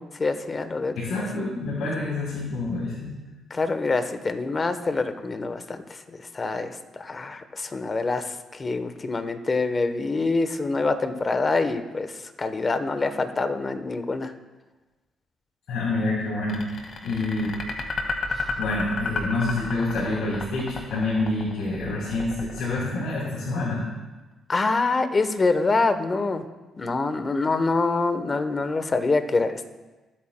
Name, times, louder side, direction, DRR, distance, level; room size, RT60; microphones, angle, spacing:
voice 1, 0.0-1.2 3.5-14.3 18.3-18.5 24.5-26.4 26.8-29.7, left 3 dB, 30° left, 9 dB, 0.9 m, -26 dB
voice 2, 0.9-3.1 15.7-17.5 18.6-23.8, left 2 dB, 75° left, -6 dB, 3.5 m, -27 dB
sound 1, 16.5-23.6, left 4 dB, 50° left, 1.7 m, -32 dB
20.5 x 8.7 x 2.2 m, 1.2 s
cardioid pair, 90°, 0 cm